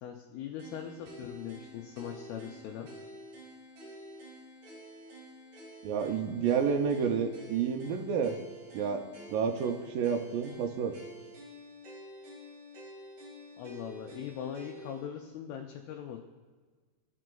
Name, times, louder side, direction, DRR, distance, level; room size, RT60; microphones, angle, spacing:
voice 1, 0.0-2.9 13.6-16.2, left 9 dB, 80° left, 2 dB, 2.3 m, -41 dB
sound 1, 0.6-15.0, equal, 55° right, 3.9 m, -49 dB
voice 2, 5.8-8.4 8.7-11.0, right 6 dB, 85° right, 4 dB, 1.9 m, -30 dB
15.0 x 6.0 x 2.3 m, 1.5 s
omnidirectional pair, 4.5 m